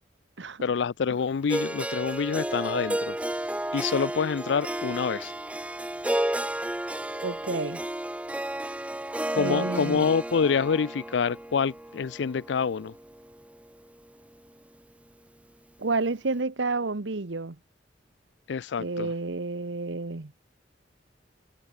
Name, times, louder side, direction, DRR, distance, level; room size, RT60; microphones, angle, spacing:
voice 1, 0.6-3.2 3.7-5.3 9.3-12.9 18.5-19.1, left 6 dB, 70° left, 0.4 m, -27 dB
Harp, 1.5-13.6, right 1 dB, 5° right, 0.9 m, -32 dB
voice 2, 7.2-7.8 9.3-10.1 15.8-17.6 18.8-20.3, right 3 dB, 75° right, 1.1 m, -30 dB
head